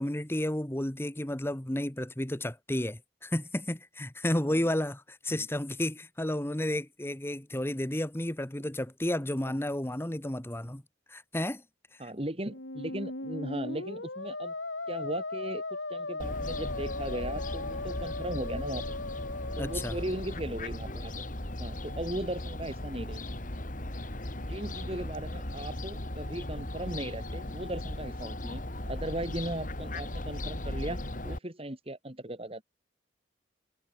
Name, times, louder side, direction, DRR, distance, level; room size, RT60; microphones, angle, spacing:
voice 1, 0.0-10.8 11.1-11.6 19.6-20.0, left 1 dB, 15° left, 1.2 m, -32 dB
voice 2, 12.0-14.5 14.9-15.6 15.9-18.8 19.6-21.2 21.6-23.3 24.3-32.6, right 1 dB, 30° right, 2.8 m, -37 dB
Musical instrument, 12.4-20.5, left 2 dB, 85° left, 5.0 m, -38 dB
Fowl, 16.2-31.4, left 1 dB, 45° left, 2.8 m, -37 dB
head